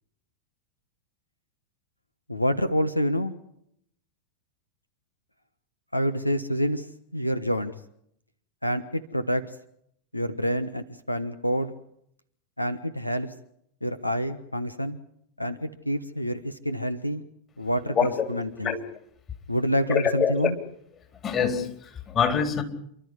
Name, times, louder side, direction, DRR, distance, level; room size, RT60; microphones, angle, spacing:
voice 1, 2.3-3.3 5.9-6.9 7.1-7.7 8.6-9.5 10.1-11.7 12.6-13.3 13.8-15.0 15.4-17.2 17.6-18.7 19.5-20.6, equal, 85° left, 13 dB, 1.3 m, -27 dB
voice 2, 17.9-18.3 18.6-18.8 19.9-20.5 21.2-22.6, left 7 dB, 25° left, 6 dB, 4.0 m, -25 dB
29.0 x 13.0 x 9.8 m, 0.71 s
figure-of-eight pair, 90°, 0 cm